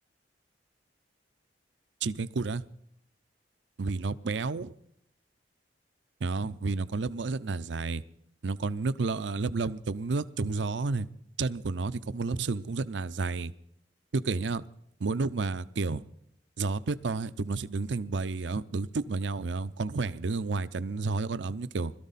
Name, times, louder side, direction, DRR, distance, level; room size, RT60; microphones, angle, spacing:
voice 1, 2.0-2.6 3.8-4.7 6.2-8.0 8.4-11.1 11.4-13.5 14.1-14.6 15.0-16.0 16.6-21.9, right 3 dB, 75° right, 0.6 m, -31 dB
21.0 x 13.5 x 4.1 m
head